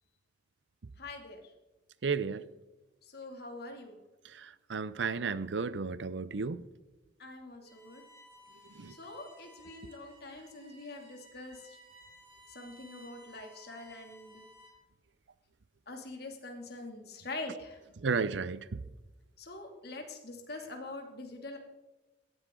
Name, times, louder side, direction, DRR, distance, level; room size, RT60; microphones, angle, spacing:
voice 1, 1.0-1.5 3.0-4.0 7.2-8.0 8.9-11.8 12.5-14.4 15.9-17.8 19.4-21.6, left 2 dB, 60° left, 2.6 m, -44 dB
voice 2, 2.0-2.4 4.3-6.7 8.8-8.9 18.0-18.8, right 5 dB, 85° right, 0.6 m, -33 dB
Bowed string instrument, 7.7-14.9, equal, 30° right, 3.9 m, -57 dB
17.5 x 13.0 x 3.8 m
head